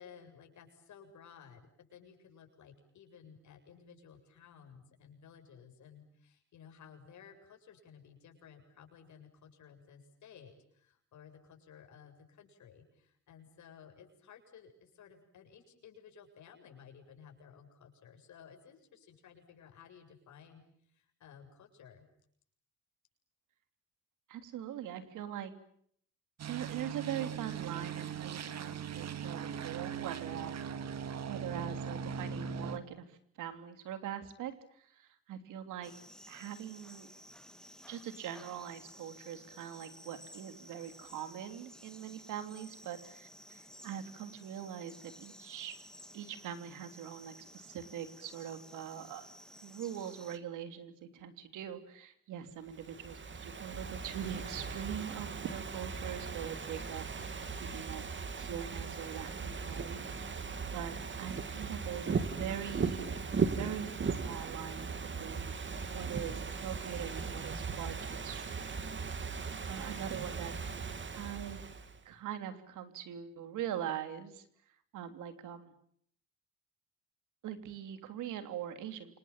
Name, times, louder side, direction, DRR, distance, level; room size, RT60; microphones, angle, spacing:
voice 1, 0.0-22.1, left 7 dB, 70° left, 4 dB, 7.6 m, -56 dB
voice 2, 24.3-25.5 26.4-30.6 31.3-35.9 36.3-37.1 37.9-45.8 46.1-49.3 49.6-60.0 60.7-64.9 65.2-65.5 65.9-68.7 69.7-70.5 71.1-71.6 72.0-74.4 74.9-75.7 77.4-79.2, right 9 dB, 85° right, 9 dB, 3.3 m, -42 dB
sound 1, 26.4-32.8, right 7 dB, 60° right, 2.3 m, -39 dB
sound 2, 35.8-50.4, equal, ahead, 2.3 m, -55 dB
Ocean / Fireworks, 52.7-72.0, right 5 dB, 40° right, 2.9 m, -38 dB
29.0 x 27.0 x 7.5 m, 0.65 s
cardioid pair, 90°, 30 cm